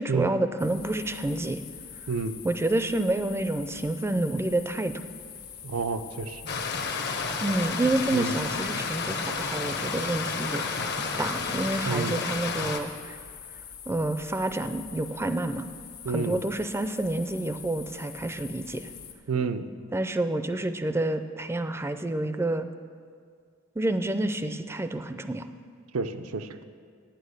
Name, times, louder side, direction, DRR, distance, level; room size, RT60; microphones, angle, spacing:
voice 1, 0.0-1.6 2.4-5.0 7.4-10.6 11.2-13.2 13.9-15.7 16.1-18.9 19.9-22.7 23.8-25.5, right 2 dB, 10° right, 10 dB, 0.4 m, -28 dB
sound 1, 0.6-19.1, left 8 dB, 80° left, 1.2 m, -44 dB
voice 2, 2.1-2.4 5.6-6.4 8.1-8.4 11.8-12.2 16.0-16.4 19.3-19.7 25.9-26.6, right 4 dB, 85° right, 9 dB, 0.6 m, -30 dB
Stream, 6.5-12.8, left 4 dB, 55° left, 0.8 m, -31 dB
9.1 x 8.9 x 6.5 m, 2.1 s
head